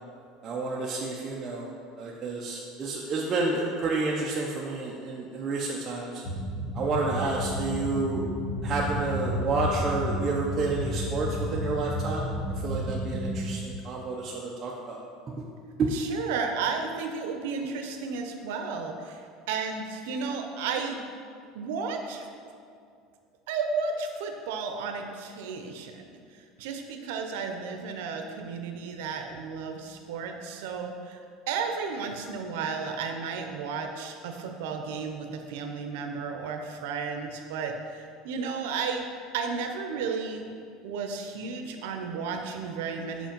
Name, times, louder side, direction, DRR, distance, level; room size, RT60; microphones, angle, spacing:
voice 1, 0.4-1.7 2.0-6.2 6.7-8.3 8.6-12.3 12.6-15.4 15.8-15.9, right 3 dB, 25° right, -3 dB, 0.5 m, -30 dB
sound 1, 6.2-13.5, equal, 45° left, 1.1 m, -32 dB
voice 2, 15.9-21.0 21.5-22.3 23.5-31.2 31.5-39.1 39.3-40.5 40.8-43.3, right 5 dB, 90° right, 4 dB, 0.6 m, -33 dB
5.6 x 5.0 x 5.2 m, 2.3 s
cardioid pair, 170°, 0 cm